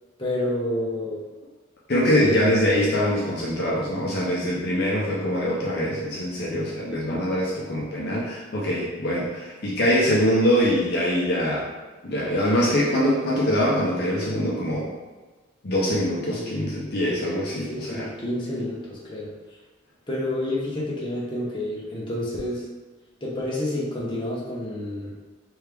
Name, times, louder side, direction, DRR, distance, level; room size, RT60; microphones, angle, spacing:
voice 1, 0.2-1.2 1.9-2.4 16.3-16.7 17.7-19.3 20.1-22.7 23.2-25.1, left 1 dB, 25° left, -6 dB, 1.0 m, -29 dB
voice 2, 1.9-11.7 12.0-14.9 15.6-18.1, equal, 55° left, -5 dB, 0.7 m, -23 dB
3.5 x 3.4 x 3.4 m, 1.3 s
head